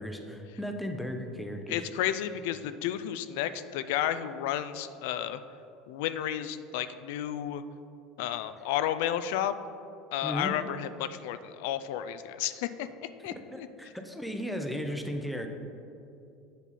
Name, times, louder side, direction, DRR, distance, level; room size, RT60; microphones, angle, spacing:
voice 1, 0.0-1.8 10.2-10.5 13.5-15.5, equal, ahead, 4 dB, 0.6 m, -35 dB
voice 2, 1.7-5.4 5.9-7.6 8.2-9.5 10.1-13.7, left 11 dB, 80° left, 12 dB, 0.3 m, -32 dB
7.3 x 5.4 x 4.1 m, 2.7 s
supercardioid pair, 130°, 0 cm